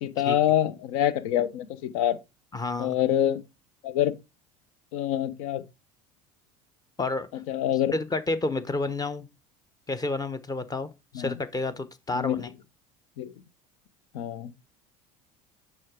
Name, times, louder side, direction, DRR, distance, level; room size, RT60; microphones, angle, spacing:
voice 1, 0.0-2.2 2.8-3.4 3.8-4.1 4.9-5.6 7.5-7.9 11.1-11.4 12.1-12.5 13.2-13.3 14.1-14.5, left 11 dB, 75° left, 0.8 m, -26 dB
voice 2, 2.5-2.9 7.0-7.3 7.9-9.3 9.9-12.5, left 3 dB, 20° left, 0.8 m, -30 dB
6.4 x 4.7 x 3.6 m
hypercardioid pair, 85°, 18 cm